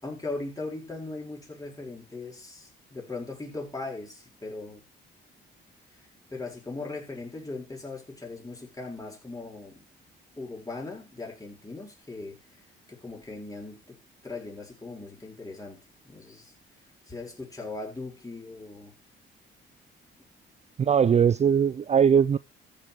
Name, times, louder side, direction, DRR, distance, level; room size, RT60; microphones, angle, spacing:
voice 1, 0.0-4.8 6.3-9.9 10.4-12.4 12.9-16.5 17.1-18.9, left 3 dB, 15° left, 6.5 m, -39 dB
voice 2, 20.8-22.4, right 7 dB, 35° right, 0.5 m, -20 dB
14.0 x 6.9 x 4.9 m
cardioid pair, 90°, 20 cm